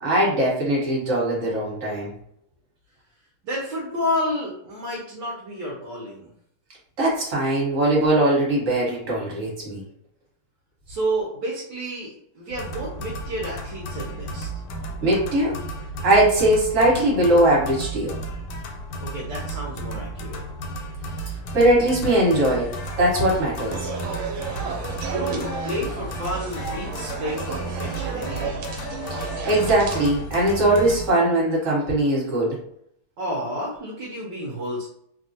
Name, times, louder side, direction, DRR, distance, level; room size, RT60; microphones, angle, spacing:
voice 1, 0.0-2.1 7.0-9.8 15.0-15.6 16.0-18.1 21.5-22.7 23.0-23.9 29.1-29.2 29.4-32.5, right 1 dB, 40° right, -5 dB, 1.4 m, -20 dB
voice 2, 3.4-6.3 10.9-14.5 19.0-20.4 25.0-28.6 33.2-34.9, equal, 65° right, -3 dB, 1.2 m, -30 dB
sound 1, 12.5-31.1, right 1 dB, 85° left, 1.5 m, -33 dB
sound 2, 23.7-30.1, right 5 dB, 85° right, 1.5 m, -33 dB
3.3 x 2.3 x 2.7 m, 0.69 s
omnidirectional pair, 2.4 m